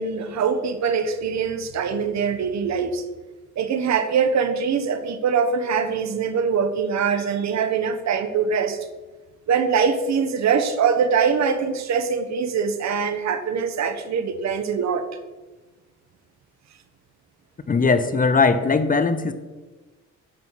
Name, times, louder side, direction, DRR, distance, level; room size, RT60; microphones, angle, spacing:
voice 1, 0.0-3.0 3.6-8.8 9.5-15.1, right 6 dB, 65° right, 10 dB, 1.1 m, -23 dB
voice 2, 17.7-19.3, left 4 dB, 30° left, 11 dB, 0.7 m, -19 dB
12.0 x 5.5 x 4.6 m, 1.2 s
cardioid pair, 90°, 30 cm